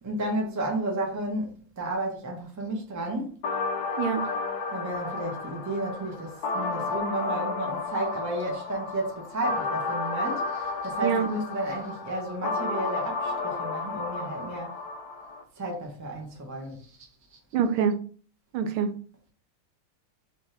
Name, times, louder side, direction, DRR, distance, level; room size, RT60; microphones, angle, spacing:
voice 1, 0.0-3.4 4.7-14.8 15.6-17.0 17.3-17.4, right 1 dB, 20° right, 0.5 m, -32 dB
sound 1, 3.4-15.4, left 3 dB, 65° left, 1.0 m, -32 dB
voice 2, 17.5-18.0 18.5-18.9, right 7 dB, 85° right, 1.5 m, -25 dB
5.3 x 2.8 x 3.3 m
omnidirectional pair, 2.4 m